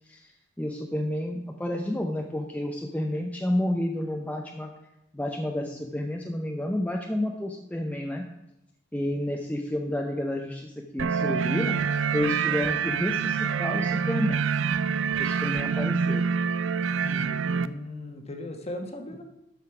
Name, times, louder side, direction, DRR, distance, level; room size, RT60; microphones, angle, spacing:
voice 1, 0.6-4.7 5.1-8.2 8.9-11.8 12.1-14.5 15.2-16.2, left 1 dB, 10° left, 2 dB, 0.6 m, -30 dB
sound 1, 11.0-17.7, right 6 dB, 80° right, 0.4 m, -26 dB
voice 2, 11.4-11.7 17.0-19.2, left 1 dB, 35° left, 5 dB, 1.2 m, -38 dB
12.5 x 5.1 x 4.8 m, 0.87 s
head